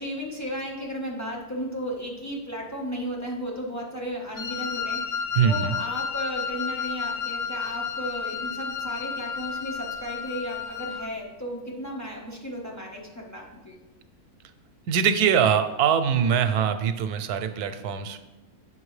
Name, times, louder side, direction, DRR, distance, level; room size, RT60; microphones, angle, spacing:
voice 1, 0.0-13.8, equal, 15° left, -2 dB, 0.8 m, -34 dB
Wind instrument woodwind instrument, 4.3-11.1, left 6 dB, 60° left, 0.5 m, -32 dB
voice 2, 5.3-5.8 14.9-18.2, right 7 dB, 85° right, 9 dB, 1.1 m, -23 dB
7.7 x 5.7 x 3.2 m, 1.1 s
omnidirectional pair, 1.6 m